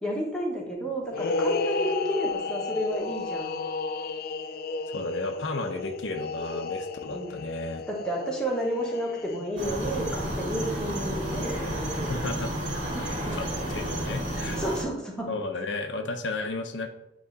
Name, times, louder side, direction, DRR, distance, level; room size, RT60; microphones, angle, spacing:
voice 1, 0.0-3.6 7.1-7.4 7.9-12.2 12.9-13.4 14.3-15.3, equal, 5° left, -3 dB, 1.2 m, -31 dB
sound 1, 1.1-9.7, left 3 dB, 55° left, 0.3 m, -32 dB
voice 2, 4.9-7.9 11.5-12.5 13.3-14.6 15.3-16.9, left 2 dB, 75° left, 5 dB, 0.7 m, -34 dB
sound 2, 9.6-14.8, right 1 dB, 75° right, 1.9 m, -31 dB
7.8 x 3.1 x 3.9 m, 0.86 s
head